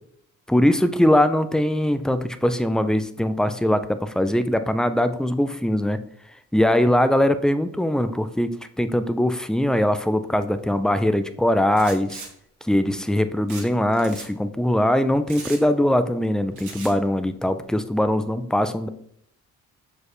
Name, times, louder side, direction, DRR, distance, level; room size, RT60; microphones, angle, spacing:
voice 1, 0.5-6.0 6.5-8.5 8.8-12.2 12.7-18.9, left 1 dB, ahead, 10 dB, 0.4 m, -21 dB
sound 1, 11.7-12.3 13.5-13.7 13.9-14.3 15.3-15.6 16.6-16.9, right 4 dB, 75° right, 1.7 m, -38 dB
6.3 x 5.0 x 3.1 m, 0.68 s
cardioid pair, 90°, 30 cm